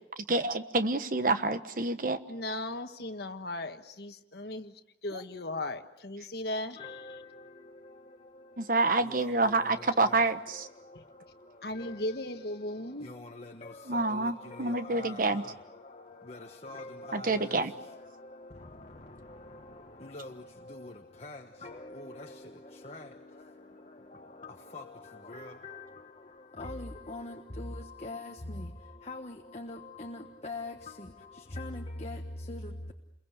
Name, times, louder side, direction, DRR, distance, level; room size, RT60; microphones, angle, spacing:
voice 1, 0.2-2.2 8.6-10.7 13.9-15.4 17.1-17.7, right 3 dB, 45° right, 1.3 m, -28 dB
voice 2, 2.3-4.7 5.0-7.0 10.9-11.0 11.6-13.1, left 1 dB, 55° left, 1.5 m, -37 dB
voice 3, 6.8-32.9, left 2 dB, 35° left, 1.3 m, -44 dB
29.5 x 22.5 x 8.2 m
head